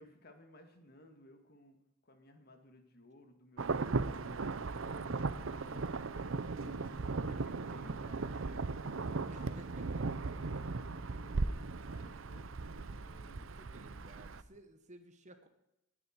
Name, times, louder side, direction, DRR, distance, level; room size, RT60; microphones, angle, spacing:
voice 1, 0.0-1.8 2.0-6.1 6.6-9.6 9.8-13.5 14.1-14.3, left 1 dB, 50° left, 6 dB, 2.2 m, -59 dB
Insect / Thunder / Rain, 3.6-14.4, right 3 dB, 75° right, 0.7 m, -37 dB
voice 2, 9.3-10.1 13.0-15.5, right 1 dB, 35° right, 8 dB, 1.5 m, -57 dB
19.5 x 10.0 x 4.6 m, 0.87 s
head